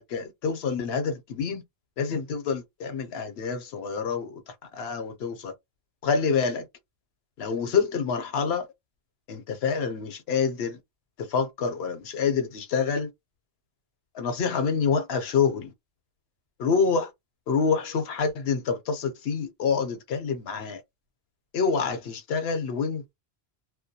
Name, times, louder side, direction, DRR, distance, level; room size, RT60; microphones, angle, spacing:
voice 1, 0.0-1.6 2.0-4.4 4.7-5.5 6.0-6.6 7.4-8.7 9.3-10.8 11.3-13.1 14.1-15.7 16.6-17.1 17.5-20.8 21.5-23.1, left 5 dB, 70° left, 0.9 m, -27 dB
2.2 x 2.2 x 2.7 m
omnidirectional pair, 1.1 m